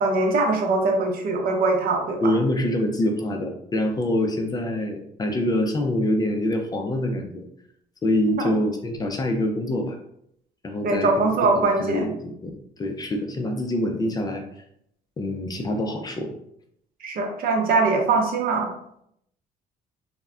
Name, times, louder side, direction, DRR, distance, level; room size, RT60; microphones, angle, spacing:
voice 1, 0.0-2.4 8.4-8.5 10.8-12.1 17.0-18.7, right 3 dB, 60° right, 2 dB, 0.7 m, -22 dB
voice 2, 2.2-7.4 8.0-10.0 10.6-11.3 11.5-12.5 12.8-14.4 15.2-16.3, left 1 dB, 25° left, 3 dB, 0.4 m, -25 dB
3.3 x 2.1 x 2.3 m, 0.73 s
cardioid pair, 110°, 17 cm